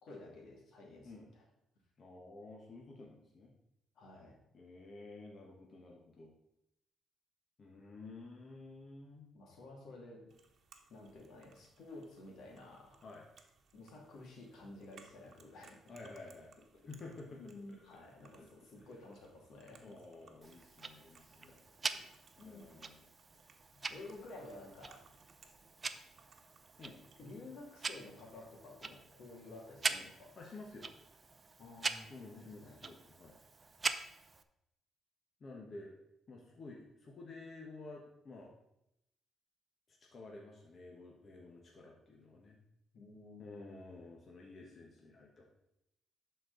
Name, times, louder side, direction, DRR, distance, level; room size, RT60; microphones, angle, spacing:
voice 1, 0.0-1.4 4.0-4.4 9.3-10.3 10.9-13.0 13.7-15.8 17.3-20.0 21.9-22.0 22.4-22.7 23.7-25.0 27.2-30.4 31.6-32.8 42.9-43.9, left 2 dB, 75° left, -1 dB, 2.3 m, -52 dB
voice 2, 2.0-3.5 4.5-6.3 7.6-9.3 13.0-13.3 15.9-16.5 16.9-17.4 17.7-18.0 18.3-18.5 18.8-18.9 19.8-21.7 22.4-23.1 23.8-23.9 26.8-27.0 30.4-30.9 32.1-33.3 35.4-35.9 36.3-38.5 39.9-42.6 43.4-45.5, left 3 dB, 45° left, -1 dB, 1.3 m, -52 dB
sound 1, 10.3-27.4, right 5 dB, 55° right, 1.1 m, -66 dB
Tick-tock, 20.4-34.4, right 4 dB, 30° right, 0.5 m, -44 dB
11.5 x 4.6 x 4.0 m, 0.82 s
cardioid pair, 90°, 0 cm